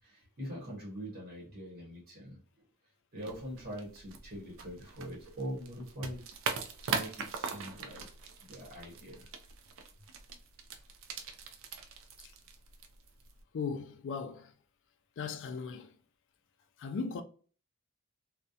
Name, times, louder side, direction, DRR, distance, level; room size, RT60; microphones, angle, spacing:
voice 1, 0.0-2.4 3.1-6.2 6.8-9.3, equal, 40° right, 0.8 m, -43 dB
sound 1, 3.2-13.4, right 5 dB, 60° right, 0.4 m, -42 dB
voice 2, 13.5-14.5 15.2-15.9 16.8-17.2, left 5 dB, 55° left, 0.3 m, -37 dB
2.3 x 2.0 x 2.7 m
head